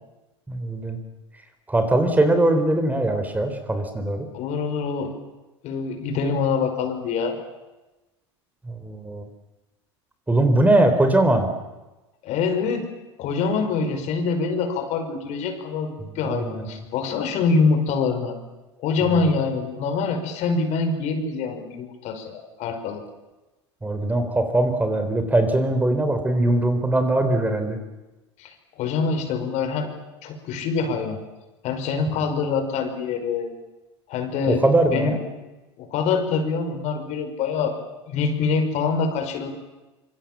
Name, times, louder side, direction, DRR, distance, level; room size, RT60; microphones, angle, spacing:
voice 1, 0.5-1.0 1.7-4.3 8.6-9.3 10.3-11.5 16.2-16.8 19.0-19.3 23.8-27.8 34.5-35.2, right 1 dB, 10° right, 8 dB, 4.0 m, -21 dB
voice 2, 4.3-5.1 5.6-7.4 12.2-12.9 13.2-18.4 18.8-23.0 28.4-29.9 30.2-31.2 31.6-33.5 34.1-34.6 34.9-35.2 35.8-37.8 38.1-39.5, left 4 dB, 50° left, 7 dB, 5.4 m, -25 dB
25.5 x 24.5 x 7.5 m, 1.1 s
hypercardioid pair, 90°, 15 cm